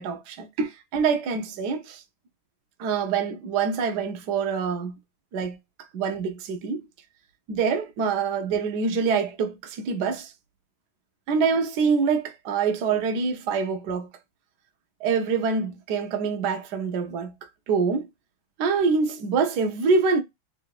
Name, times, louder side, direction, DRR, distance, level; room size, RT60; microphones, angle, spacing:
voice 1, 0.0-2.0 2.8-5.0 5.3-5.6 5.9-6.8 7.5-10.3 11.3-14.1 15.0-17.3 17.7-18.1 18.6-20.2, right 5 dB, 65° right, 1.1 m, -25 dB
3.7 x 2.5 x 4.6 m
omnidirectional pair, 2.4 m